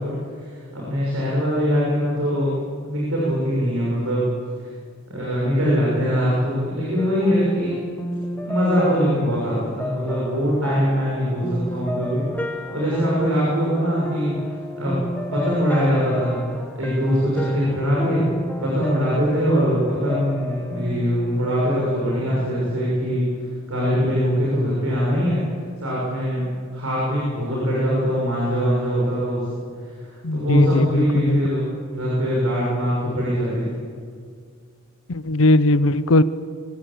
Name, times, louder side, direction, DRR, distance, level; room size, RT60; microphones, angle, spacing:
voice 1, 0.0-2.5 2.8-4.2 4.6-4.7 5.1-7.8 8.4-12.2 12.7-15.0 15.3-16.4 16.7-18.2 18.6-23.3 23.7-25.4 25.8-29.4 30.0-31.6 31.9-33.8, equal, 75° right, -5 dB, 6.7 m, -22 dB
sound 1, 7.0-23.0, left 1 dB, 10° left, 1.2 m, -33 dB
voice 2, 30.2-31.4 35.1-36.2, left 2 dB, 70° left, 15 dB, 0.8 m, -18 dB
24.0 x 16.5 x 8.6 m, 2.1 s
head